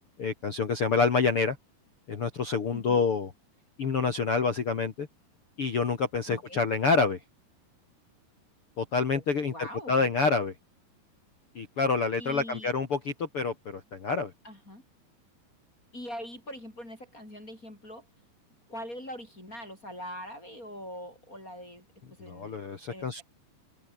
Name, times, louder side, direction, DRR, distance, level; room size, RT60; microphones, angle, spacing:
voice 1, 0.2-1.6 2.1-3.3 3.8-5.1 5.6-7.2 8.8-10.5 11.6-14.3 22.3-23.2, left 4 dB, 45° left, 1.9 m, -27 dB
voice 2, 6.3-6.6 9.1-10.1 12.2-12.7 14.4-14.8 15.9-18.1 18.7-22.6 22.9-23.2, equal, 20° left, 7.1 m, -43 dB
omnidirectional pair, 5.1 m